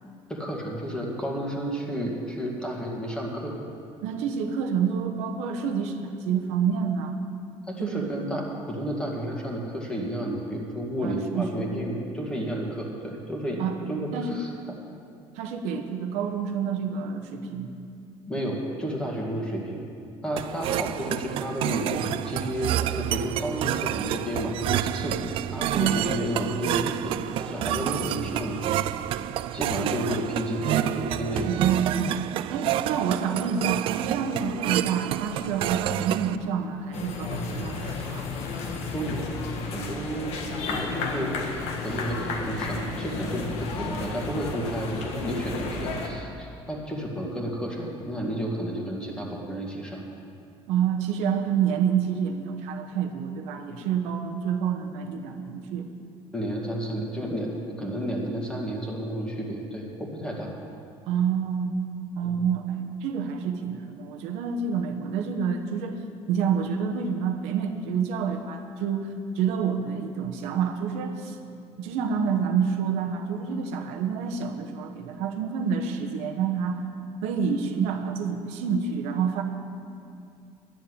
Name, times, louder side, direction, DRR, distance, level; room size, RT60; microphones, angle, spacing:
voice 1, 0.3-3.6 7.7-13.6 13.9-14.5 18.3-19.8 20.2-29.0 29.5-31.7 38.9-39.3 39.6-50.0 56.3-60.5 62.2-62.3, equal, 10° left, -2 dB, 1.9 m, -31 dB
voice 2, 4.0-7.2 7.8-8.1 11.0-11.7 13.6-13.8 14.1-14.4 15.4-17.7 25.7-26.0 31.5-32.2 32.5-38.3 50.7-55.9 61.1-61.7 62.2-65.9 66.3-69.1 69.3-71.4 71.8-76.8 77.2-79.4, right 7 dB, 90° right, 4 dB, 1.1 m, -28 dB
sound 1, 20.4-36.4, right 12 dB, 55° right, 0.4 m, -29 dB
sound 2, 36.9-46.1, left 3 dB, 70° left, 1.5 m, -32 dB
11.0 x 7.1 x 9.7 m, 2.5 s
cardioid pair, 155°, 11 cm